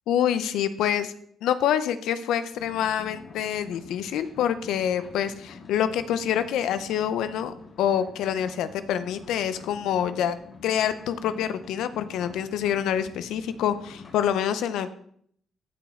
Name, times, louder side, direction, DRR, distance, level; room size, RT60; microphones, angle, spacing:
voice 1, 0.1-1.1 1.4-10.4 10.6-14.9, left 9 dB, 85° left, 12 dB, 0.7 m, -26 dB
sound 1, 2.5-14.3, left 4 dB, 50° left, 2.9 m, -46 dB
14.5 x 5.2 x 3.8 m, 0.65 s
cardioid pair, 90°, 0 cm